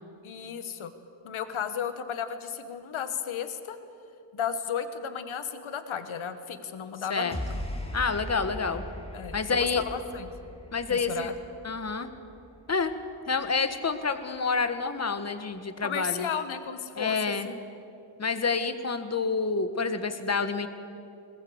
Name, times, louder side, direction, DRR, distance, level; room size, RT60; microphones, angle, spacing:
voice 1, 0.2-0.9 1.2-3.8 4.3-7.4 8.6-8.7 9.1-10.3 10.9-11.3 15.8-17.2 17.4-17.6, left 7 dB, 85° left, 9 dB, 1.5 m, -34 dB
sound 1, 7.3-13.8, left 1 dB, 10° left, 2.8 m, -40 dB
voice 2, 7.9-8.8 9.3-9.8 10.7-11.3 11.6-12.1 12.7-12.9 13.3-16.3 16.9-17.5 18.2-20.7, left 4 dB, 35° left, 9 dB, 1.5 m, -28 dB
21.0 x 19.5 x 8.1 m, 2.6 s
wide cardioid pair, 110°, 47 cm